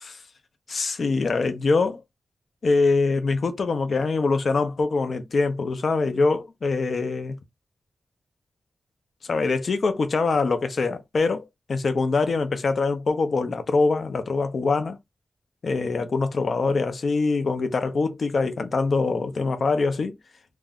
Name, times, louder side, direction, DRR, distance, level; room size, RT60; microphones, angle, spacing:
voice 1, 0.7-2.0 2.6-7.4 9.3-15.0 15.6-20.1, left 3 dB, 50° left, 0.5 m, -24 dB
2.5 x 2.1 x 3.5 m
wide cardioid pair, 170°, 0 cm